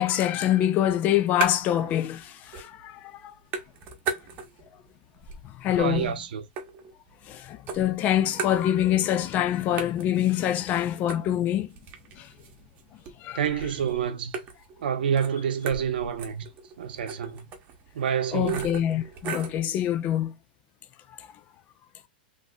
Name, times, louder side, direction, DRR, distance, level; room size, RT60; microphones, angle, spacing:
voice 1, 0.0-3.3 5.4-6.1 7.3-11.7 12.2-12.3 13.2-13.4 18.3-20.3 21.2-21.3, left 11 dB, 30° left, 0.4 m, -25 dB
sound 1, 0.8-1.9 2.2-2.9 3.1-4.7 5.1-7.3 7.7-9.1 9.4-9.5 9.8-19.6, right 6 dB, 35° right, 0.8 m, -38 dB
voice 2, 5.7-6.4 13.3-14.4 14.8-16.5 16.8-17.5 17.9-18.7, right 8 dB, 75° right, 0.7 m, -28 dB
3.9 x 2.7 x 2.3 m
hypercardioid pair, 135°, 5 cm